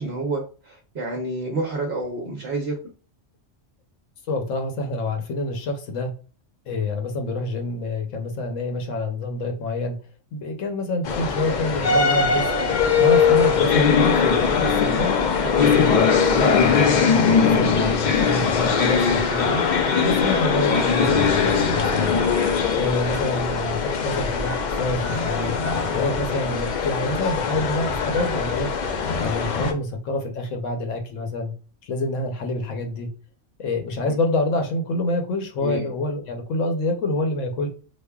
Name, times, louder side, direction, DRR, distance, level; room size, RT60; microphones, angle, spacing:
voice 1, 0.0-2.7 12.5-12.7 15.4-15.8 18.6-18.8 21.8-22.0 34.0-34.2 35.6-35.9, right 2 dB, 65° right, 0 dB, 1.0 m, -30 dB
voice 2, 4.3-6.1 6.7-10.0 10.3-12.5 13.0-15.1 15.5-19.6 20.0-22.2 22.7-25.6 25.9-28.7 29.2-31.5 31.8-33.1 33.6-37.7, left 2 dB, 80° left, 4 dB, 1.1 m, -27 dB
sound 1, 11.1-29.7, left 5 dB, 65° left, 0.4 m, -21 dB
5.2 x 2.1 x 2.3 m, 0.38 s
omnidirectional pair, 1.3 m